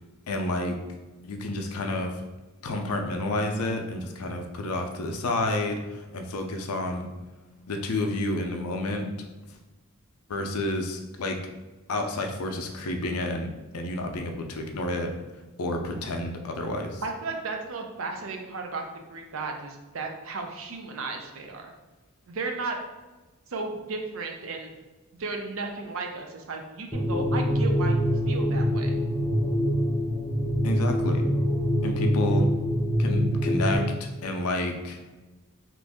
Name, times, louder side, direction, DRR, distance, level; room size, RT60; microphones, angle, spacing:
voice 1, 0.3-0.8 1.2-2.1 2.6-7.1 7.7-9.1 10.3-11.4 11.9-13.5 13.7-15.1 15.6-17.0 30.6-31.3 31.8-32.5 33.0-33.8 34.2-35.0, left 2 dB, 90° left, 4 dB, 0.5 m, -29 dB
voice 2, 17.0-18.8 19.1-21.7 22.3-22.8 23.5-24.7 25.2-28.0 28.3-28.9, right 3 dB, 65° right, 3 dB, 0.5 m, -34 dB
sound 1, 26.9-33.7, equal, 10° left, 0.4 m, -25 dB
3.0 x 2.5 x 3.5 m, 1.2 s
head